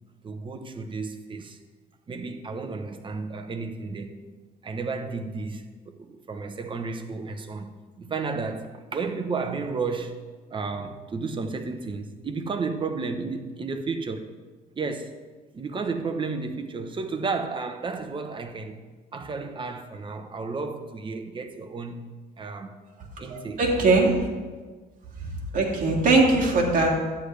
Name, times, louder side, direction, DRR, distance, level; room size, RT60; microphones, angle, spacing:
voice 1, 0.2-1.6 2.1-4.2 4.6-10.2 10.5-14.3 14.8-15.2 15.5-18.8 19.1-22.0 22.4-22.8 23.2-24.0 24.6-24.7, right 4 dB, 30° right, 0.9 m, -32 dB
voice 2, 23.3-24.2 25.5-26.9, right 3 dB, 50° right, 2.3 m, -20 dB
12.0 x 9.7 x 3.3 m
cardioid pair, 110°, 17 cm